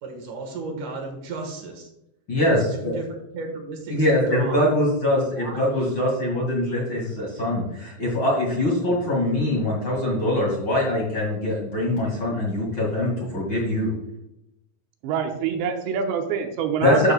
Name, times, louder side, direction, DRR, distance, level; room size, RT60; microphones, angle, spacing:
voice 1, 0.0-1.9 2.4-2.5 2.8-4.7 5.1-5.5 8.9-9.0, right 3 dB, 65° right, 2 dB, 2.2 m, -35 dB
voice 2, 2.3-2.9 3.9-13.9 16.8-17.1, left 1 dB, 45° left, -3 dB, 1.6 m, -23 dB
voice 3, 15.0-17.1, right 7 dB, 85° right, 4 dB, 3.1 m, -25 dB
13.0 x 6.6 x 2.2 m, 0.88 s
omnidirectional pair, 5.0 m